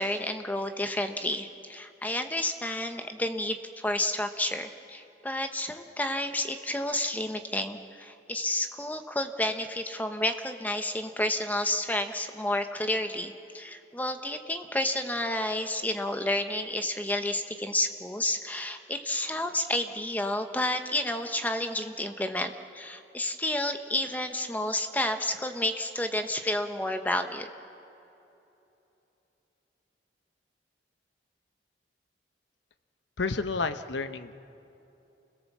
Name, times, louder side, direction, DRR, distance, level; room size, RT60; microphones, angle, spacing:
voice 1, 0.0-27.5, left 1 dB, 10° left, 7 dB, 0.9 m, -30 dB
voice 2, 33.2-34.3, left 4 dB, 75° left, 10 dB, 0.9 m, -30 dB
29.0 x 17.5 x 7.3 m, 3.0 s
head